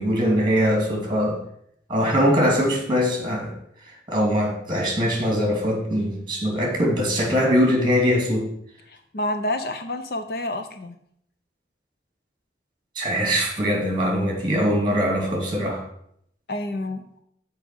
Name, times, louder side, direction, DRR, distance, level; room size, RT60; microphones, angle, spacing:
voice 1, 0.0-1.4 1.9-3.5 4.1-8.5 13.0-15.8, equal, 25° right, -1 dB, 2.5 m, -22 dB
voice 2, 8.9-11.0 16.5-17.1, left 1 dB, 55° left, 7 dB, 0.7 m, -29 dB
7.4 x 4.9 x 6.9 m, 0.71 s
head